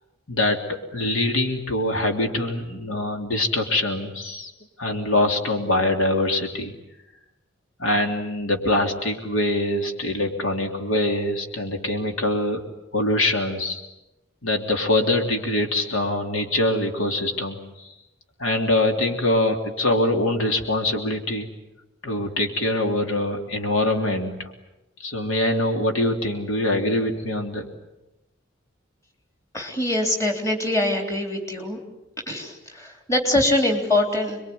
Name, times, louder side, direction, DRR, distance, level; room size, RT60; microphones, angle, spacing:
voice 1, 0.3-4.5 4.8-6.7 7.8-12.6 12.9-13.8 14.4-17.9 18.4-21.5 22.0-24.5 25.0-27.7, left 1 dB, 80° left, 3 dB, 3.3 m, -24 dB
voice 2, 29.5-31.8 32.3-34.4, left 1 dB, 15° left, 3 dB, 3.6 m, -23 dB
27.5 x 22.0 x 9.5 m, 0.94 s
head